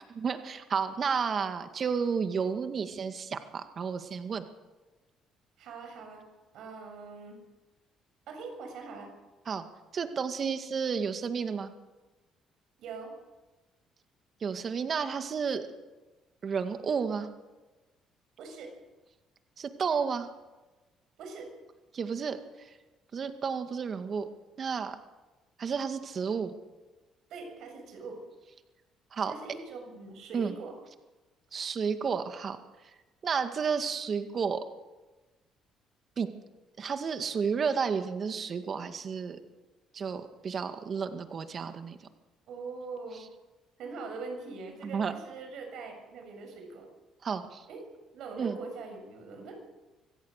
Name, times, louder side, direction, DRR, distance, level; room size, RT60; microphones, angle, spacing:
voice 1, 0.2-4.5 9.5-9.6 9.9-11.7 14.4-15.6 16.4-17.3 19.6-20.3 21.9-22.4 23.1-24.3 24.6-25.0 25.6-26.5 29.1-29.3 30.3-30.5 31.5-32.6 33.2-34.6 36.2-36.3 36.8-39.4 39.9-42.0 44.8-45.1 47.2-47.6 48.4-48.6, right 6 dB, 45° right, 8 dB, 2.1 m, -31 dB
voice 2, 5.6-6.2 6.5-7.4 8.3-9.1 12.8-13.1 18.4-18.7 21.2-21.5 27.3-28.2 29.3-30.7 42.5-43.2 43.8-46.9 47.7-47.8 48.1-49.5, right 4 dB, 70° right, 4 dB, 7.3 m, -42 dB
25.0 x 16.5 x 6.7 m, 1.2 s
cardioid pair, 85°, 0 cm